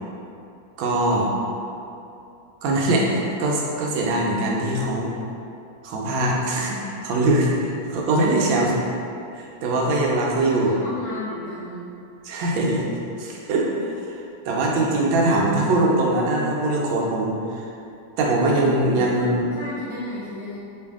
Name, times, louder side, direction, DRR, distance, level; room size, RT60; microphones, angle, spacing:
voice 1, 0.8-1.3 2.6-5.1 5.8-8.8 9.4-10.7 12.2-12.9 13.2-17.7 18.2-19.5, right 2 dB, 90° right, -2 dB, 1.4 m, -22 dB
voice 2, 10.4-11.8 18.9-19.0 19.5-20.6, left 1 dB, 90° left, -9 dB, 0.6 m, -33 dB
3.2 x 2.6 x 3.5 m, 2.7 s
omnidirectional pair, 2.1 m